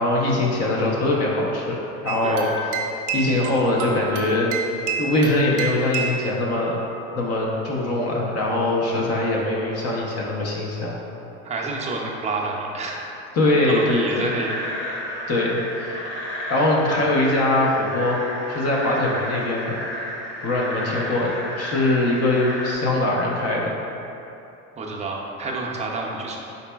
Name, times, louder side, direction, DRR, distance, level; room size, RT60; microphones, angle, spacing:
voice 1, 0.0-1.8 2.0-2.7 3.1-4.5 5.0-6.8 7.2-11.0 13.3-14.3 15.3-16.0 16.5-18.2 18.5-19.8 20.4-21.3 21.6-23.7, left 2 dB, 45° left, -3 dB, 0.6 m, -22 dB
sound 1, 2.1-6.3, right 4 dB, 75° right, 0.6 m, -29 dB
voice 2, 2.2-2.7 11.4-13.0 13.4-14.5 24.8-26.4, right 3 dB, 20° right, -2 dB, 0.5 m, -29 dB
sound 2, 13.6-22.7, equal, 75° left, 1.1 m, -32 dB
4.2 x 4.0 x 2.2 m, 2.9 s
supercardioid pair, 110°, 36 cm